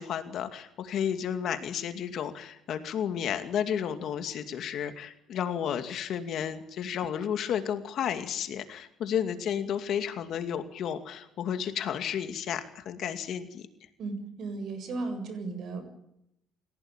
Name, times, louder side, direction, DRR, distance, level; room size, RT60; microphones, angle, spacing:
voice 1, 0.0-13.7, left 8 dB, 45° left, 8 dB, 2.3 m, -32 dB
voice 2, 14.0-15.8, right 3 dB, 45° right, 9 dB, 7.1 m, -35 dB
29.5 x 17.0 x 8.9 m, 0.80 s
cardioid pair, 155°, 0 cm